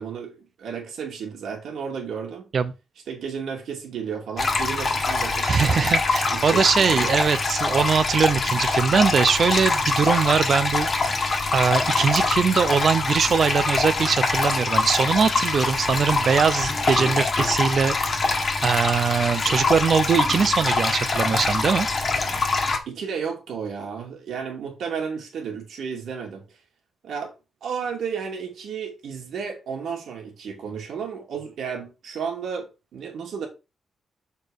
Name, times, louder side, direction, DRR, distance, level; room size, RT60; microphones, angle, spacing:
voice 1, 0.0-2.5 3.1-5.9 6.3-7.2 22.9-26.4 27.0-27.3 27.6-33.5, right 6 dB, 75° right, 2.4 m, -33 dB
sound 1, 4.4-22.8, left 3 dB, 40° left, 1.5 m, -24 dB
voice 2, 5.4-10.9 11.5-18.0 18.3-21.9, right 6 dB, 50° right, 0.7 m, -21 dB
6.9 x 4.5 x 4.8 m
wide cardioid pair, 135°, 0 cm